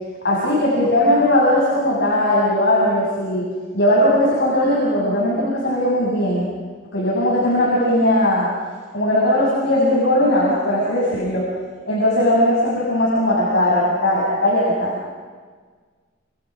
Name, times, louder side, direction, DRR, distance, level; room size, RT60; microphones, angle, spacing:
voice 1, 0.2-3.5 3.7-6.4 6.9-8.5 8.9-11.5 11.9-15.0, left 1 dB, 60° left, -5 dB, 7.4 m, -18 dB
29.5 x 29.0 x 6.2 m, 1.5 s
head